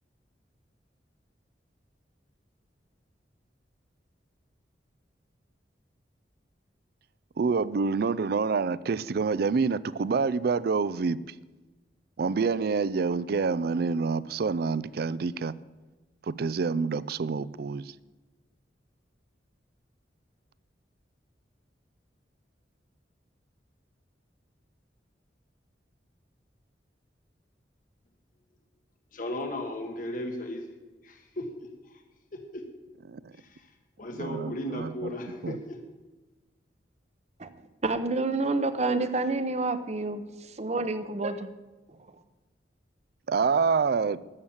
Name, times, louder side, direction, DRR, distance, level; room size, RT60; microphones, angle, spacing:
voice 1, 7.4-11.2 12.2-15.5 16.3-17.9 33.1-33.3 34.1-35.1 35.4-35.6 43.3-44.2, right 5 dB, 55° right, 19 dB, 0.4 m, -27 dB
voice 2, 29.1-30.6 31.0-31.5 31.9-32.0 32.5-32.6 33.4-33.7 34.0-35.8, left 1 dB, 50° left, 3 dB, 1.3 m, -35 dB
voice 3, 37.8-40.2 40.6-41.5, right 3 dB, 40° right, 11 dB, 0.8 m, -28 dB
13.0 x 7.3 x 7.2 m, 1.2 s
head